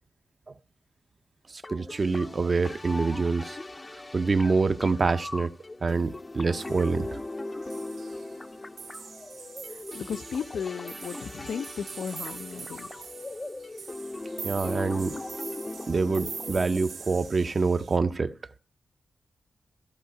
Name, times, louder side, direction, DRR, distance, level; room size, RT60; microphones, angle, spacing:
voice 1, 1.5-3.6 4.1-5.5 5.8-7.2 14.4-15.2 15.9-18.3, right 4 dB, 35° right, 0.6 m, -26 dB
sound 1, 1.6-17.6, left 2 dB, 20° left, 0.5 m, -39 dB
sound 2, 6.5-7.3 7.6-8.5 8.8-18.0, right 5 dB, 70° right, 2.0 m, -43 dB
voice 2, 9.7-13.0, left 7 dB, 85° left, 0.5 m, -35 dB
14.5 x 5.6 x 9.4 m
wide cardioid pair, 160°, 0 cm